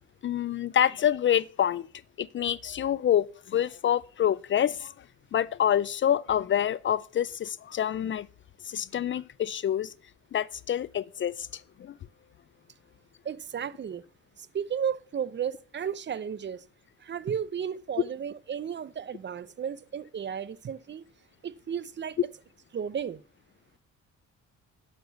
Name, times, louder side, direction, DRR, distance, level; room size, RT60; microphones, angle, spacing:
voice 1, 0.2-1.9 2.2-5.0 5.3-8.3 8.6-9.9 10.3-12.0, left 10 dB, 40° left, 0.4 m, -27 dB
voice 2, 13.2-14.0 14.4-16.6 17.0-21.0 21.4-22.2 22.7-23.2, right 8 dB, 35° right, 0.6 m, -34 dB
8.1 x 6.7 x 6.9 m
cardioid pair, 90°, 30 cm